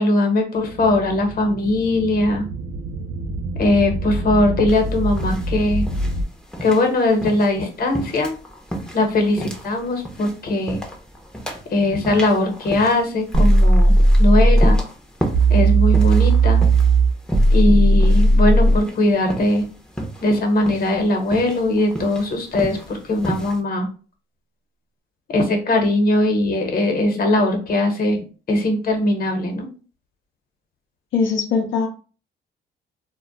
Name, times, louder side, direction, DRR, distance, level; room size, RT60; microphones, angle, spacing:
voice 1, 0.0-2.5 3.6-5.8 6.6-8.3 8.9-10.8 11.7-13.9 14.2-14.8 15.5-16.6 17.5-19.6 20.2-23.9 25.3-28.2 28.5-29.7, left 2 dB, 50° left, 4 dB, 0.9 m, -20 dB
sound 1, 0.6-6.2, right 1 dB, 75° right, 0.4 m, -27 dB
sound 2, 4.7-23.6, right 1 dB, 5° left, 0.6 m, -33 dB
sound 3, 13.3-14.8 15.3-18.8, right 2 dB, 45° right, 0.7 m, -14 dB
voice 2, 31.1-31.9, left 5 dB, 70° left, 1 dB, 0.5 m, -20 dB
2.2 x 2.0 x 3.8 m, 0.37 s
cardioid pair, 90°, 20 cm